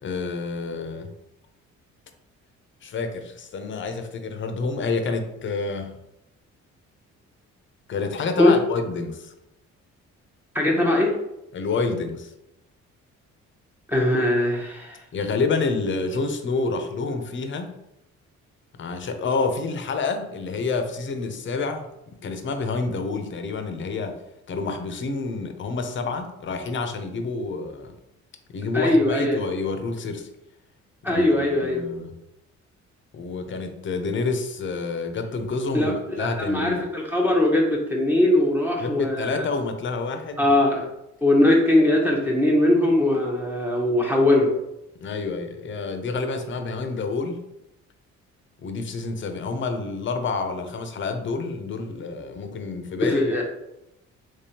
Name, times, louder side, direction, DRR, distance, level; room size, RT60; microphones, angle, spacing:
voice 1, 0.0-1.1 2.8-6.0 7.9-9.3 11.5-12.3 15.1-17.7 18.7-24.2 24.5-27.9 28.5-30.3 31.0-32.1 33.1-36.8 38.8-40.6 45.0-47.5 48.6-53.3, left 3 dB, 40° left, 6 dB, 0.6 m, -28 dB
voice 2, 10.5-11.2 13.9-15.0 28.7-29.4 31.0-31.8 35.7-35.9 36.2-39.5 40.4-40.8 41.2-44.5 53.0-53.4, left 1 dB, 5° right, -2 dB, 0.7 m, -20 dB
3.5 x 3.2 x 2.8 m, 0.86 s
cardioid pair, 90°, 30 cm